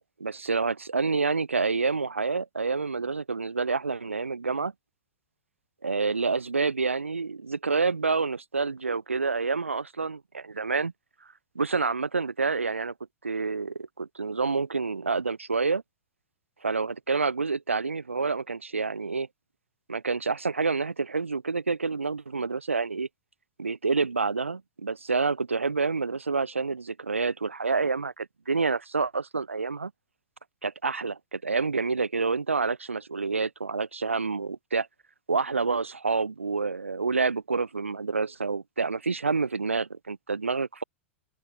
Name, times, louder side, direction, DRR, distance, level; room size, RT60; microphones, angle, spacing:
voice 1, 0.2-4.7 5.8-10.9 11.5-12.9 13.2-15.8 16.6-19.3 19.9-23.1 23.6-29.9 30.6-34.9 35.3-40.8, right 4 dB, 80° right, 1.2 m, -28 dB
open air
figure-of-eight pair, 95°, 7 cm